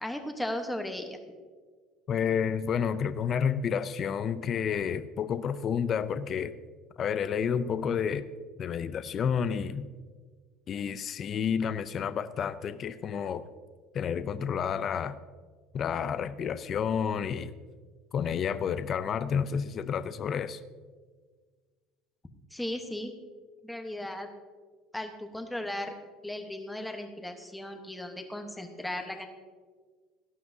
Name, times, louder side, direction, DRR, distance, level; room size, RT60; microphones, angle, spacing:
voice 1, 0.0-1.2 22.5-23.1 23.6-24.3 24.9-25.9 26.2-29.3, left 1 dB, 5° left, 5 dB, 1.0 m, -36 dB
voice 2, 2.1-6.5 7.0-8.2 8.6-9.9 10.7-13.4 13.9-15.2 15.7-17.5 18.1-20.6, left 7 dB, 30° left, 12 dB, 0.4 m, -30 dB
18.0 x 12.0 x 2.7 m, 1.5 s
cardioid pair, 165°, 0 cm